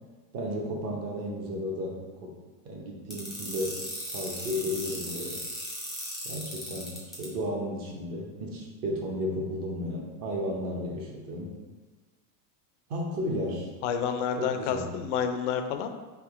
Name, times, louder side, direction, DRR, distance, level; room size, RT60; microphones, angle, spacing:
voice 1, 0.3-2.4 2.6-3.9 4.1-5.4 6.2-11.5 12.9-13.7 14.4-14.9, equal, 35° right, 0 dB, 0.8 m, -33 dB
sound 1, 3.1-7.3, left 1 dB, ahead, 0.7 m, -37 dB
voice 2, 13.8-15.9, left 7 dB, 50° left, 7 dB, 0.5 m, -29 dB
3.5 x 2.9 x 4.7 m, 1.3 s
supercardioid pair, 160°, 48 cm